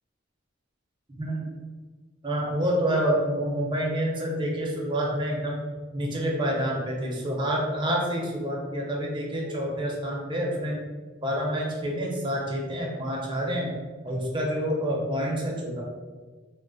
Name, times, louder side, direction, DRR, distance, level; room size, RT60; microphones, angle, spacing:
voice 1, 2.2-5.6 5.9-10.8 11.2-13.7 14.0-15.8, equal, 25° right, -2 dB, 0.6 m, -28 dB
3.1 x 2.1 x 3.8 m, 1.4 s
head